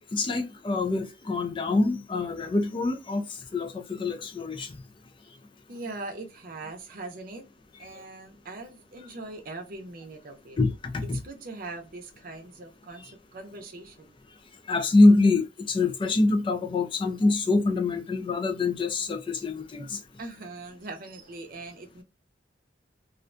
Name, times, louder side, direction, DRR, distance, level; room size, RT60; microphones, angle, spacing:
voice 1, 0.1-3.3 3.5-4.8 10.6-11.2 14.7-20.0, left 2 dB, 25° left, 0.3 m, -24 dB
voice 2, 5.7-7.4 7.8-10.6 11.2-14.2 20.2-22.0, right 2 dB, 50° right, 0.6 m, -41 dB
2.4 x 2.2 x 2.5 m
head